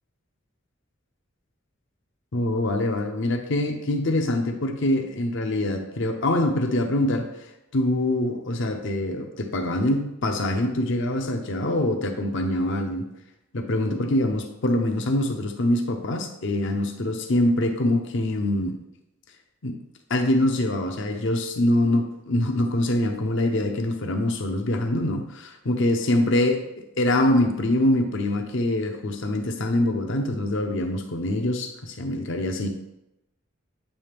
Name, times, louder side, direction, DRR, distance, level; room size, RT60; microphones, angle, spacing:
voice 1, 2.3-7.3 7.7-13.1 13.5-18.8 19.6-19.8 20.1-26.6 27.0-32.7, left 1 dB, 60° left, 5 dB, 0.7 m, -24 dB
8.4 x 3.2 x 3.4 m, 0.89 s
head